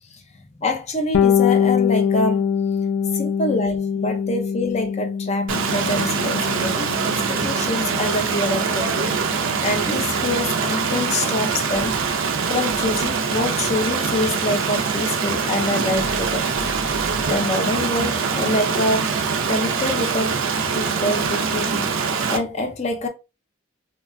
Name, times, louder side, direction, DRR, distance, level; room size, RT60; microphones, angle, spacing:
voice 1, 0.1-2.5 3.1-6.9 7.3-9.3 9.6-12.0 12.5-16.5 17.3-20.4 20.7-21.9 22.3-23.1, left 2 dB, 30° left, 0.4 m, -26 dB
Bass guitar, 1.1-10.8, left 7 dB, 90° left, 0.4 m, -24 dB
Stream, 5.5-22.4, right 5 dB, 65° right, 0.5 m, -23 dB
sound 1, 9.7-19.5, left 1 dB, 85° right, 0.9 m, -42 dB
3.1 x 2.2 x 2.5 m
head